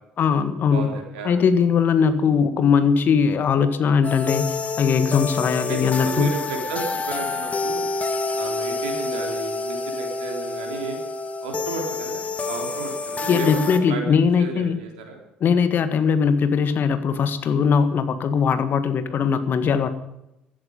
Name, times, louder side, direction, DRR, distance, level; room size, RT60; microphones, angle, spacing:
voice 1, 0.2-0.9 1.3-6.3 13.3-14.8 15.4-19.9, left 6 dB, 50° left, 11 dB, 1.7 m, -20 dB
voice 2, 0.7-1.4 5.3-5.4 5.7-7.9 8.3-11.0 11.4-15.2, right 4 dB, 75° right, 2 dB, 3.8 m, -33 dB
sound 1, 4.0-13.8, left 4 dB, 30° left, 2.0 m, -28 dB
15.5 x 13.5 x 5.4 m, 0.87 s
hypercardioid pair, 55°, 4 cm